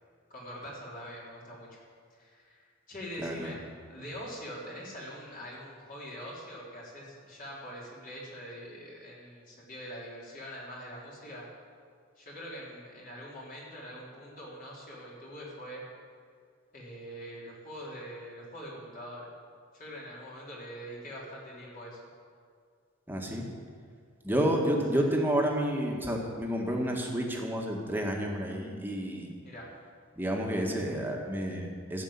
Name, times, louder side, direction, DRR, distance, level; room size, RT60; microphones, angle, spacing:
voice 1, 0.3-1.8 2.1-3.6 3.9-11.5 12.2-15.8 16.7-19.3 19.7-22.0 24.9-25.1 29.4-29.7, equal, 45° left, -5 dB, 3.8 m, -43 dB
voice 2, 3.2-3.5 23.1-23.5 24.2-29.3 30.2-32.0, equal, 10° right, 0 dB, 1.8 m, -30 dB
14.0 x 7.5 x 8.6 m, 2.1 s
head